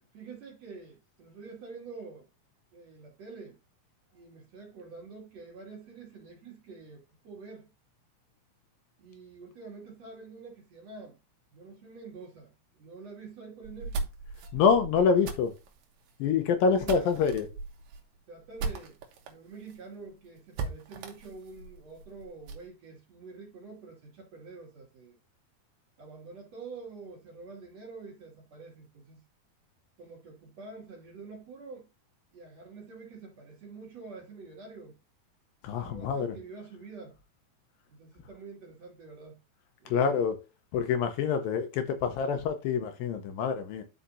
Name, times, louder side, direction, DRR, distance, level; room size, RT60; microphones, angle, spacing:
voice 1, 0.1-2.3 2.7-3.6 4.1-7.7 9.0-11.2 11.5-14.1 16.7-17.1 18.3-19.0 19.3-25.2 26.0-29.2 30.0-31.9 32.3-35.0 35.8-37.2 37.9-39.4 39.8-40.3, right 4 dB, 50° right, 3.3 m, -47 dB
sound 1, 13.6-19.3 19.7-19.8 20.0-20.1 20.5-22.7, right 3 dB, 70° right, 2.8 m, -38 dB
voice 2, 14.5-15.5 16.2-17.5 35.6-36.4 39.9-40.4 40.7-43.8, left 6 dB, 80° left, 2.5 m, -26 dB
11.5 x 5.0 x 2.7 m
omnidirectional pair, 4.3 m